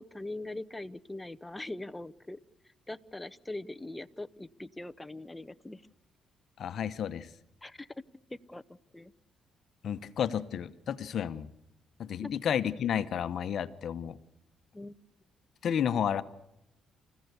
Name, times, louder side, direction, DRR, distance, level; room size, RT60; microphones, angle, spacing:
voice 1, 0.0-2.4 2.9-5.8 7.6-8.0 8.3-8.6 8.9-9.1 12.2-12.3 14.7-14.9, left 2 dB, 10° left, 14 dB, 0.8 m, -41 dB
voice 2, 6.6-7.3 9.8-11.5 12.0-14.2 15.6-16.2, left 8 dB, 60° left, 12 dB, 1.0 m, -31 dB
28.0 x 15.5 x 8.1 m, 0.87 s
cardioid pair, 90°, 0 cm